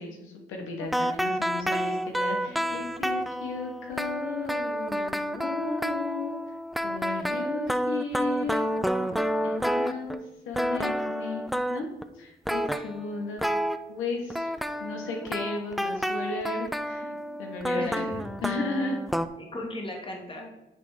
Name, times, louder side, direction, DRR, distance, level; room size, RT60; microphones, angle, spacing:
voice 1, 0.0-6.5 6.8-8.7 9.0-9.1 9.4-10.2 10.4-11.4 11.7-11.9 12.1-13.4 13.9-14.5 14.8-17.1 17.4-18.0 18.4-19.0, left 3 dB, 90° left, 2 dB, 1.3 m, -34 dB
sound 1, 0.8-10.3 10.5-12.0 12.5-13.8 14.3-19.3, equal, ahead, 0.3 m, -29 dB
voice 2, 17.0-17.4 17.8-18.6 19.4-20.5, left 1 dB, 25° left, 1 dB, 1.7 m, -38 dB
9.2 x 3.4 x 4.8 m, 0.96 s
cardioid pair, 90°, 20 cm